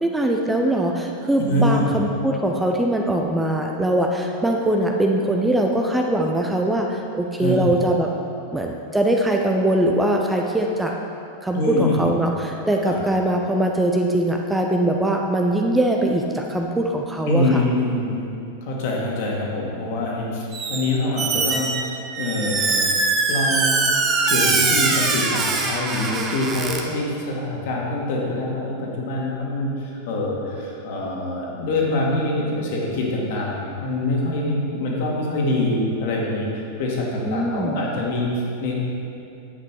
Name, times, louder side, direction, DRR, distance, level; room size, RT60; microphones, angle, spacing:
voice 1, 0.0-8.1 8.5-10.9 11.4-17.6 37.2-37.8, right 1 dB, 5° right, 1 dB, 0.7 m, -22 dB
voice 2, 1.5-1.9 7.4-7.7 11.5-12.0 12.9-13.0 17.3-18.3 18.6-21.9 22.2-22.9 23.3-23.9 24.3-38.7, left 2 dB, 50° left, -3 dB, 2.3 m, -24 dB
Squeak, 20.5-20.9 21.2-26.8, right 3 dB, 25° right, 1.2 m, -22 dB
10.5 x 8.3 x 4.8 m, 2.6 s
figure-of-eight pair, 90°, 0 cm